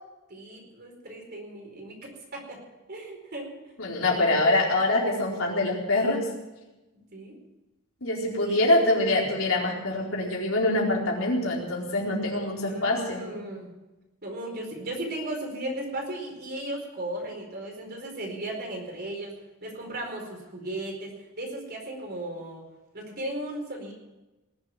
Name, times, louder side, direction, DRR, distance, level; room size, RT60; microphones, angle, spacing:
voice 1, 0.3-2.6 2.9-3.5 4.1-4.4 7.1-7.3 8.4-8.9 12.6-13.7 14.2-19.3 19.6-22.6 22.9-23.9, right 1 dB, 45° right, 1 dB, 4.6 m, -36 dB
voice 2, 3.8-6.2 8.0-13.2, left 2 dB, 65° left, -2 dB, 4.3 m, -24 dB
20.0 x 7.8 x 9.2 m, 1.0 s
head